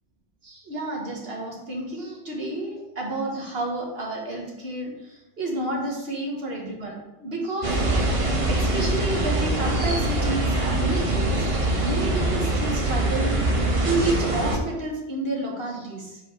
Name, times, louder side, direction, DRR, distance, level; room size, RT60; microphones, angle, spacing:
voice 1, 0.4-7.8 8.5-11.5 11.8-13.3 13.8-16.2, right 2 dB, 55° right, -2 dB, 1.7 m, -30 dB
sound 1, 7.6-14.6, right 1 dB, 30° right, 0.8 m, -23 dB
5.2 x 4.1 x 5.3 m, 0.95 s
omnidirectional pair, 1.2 m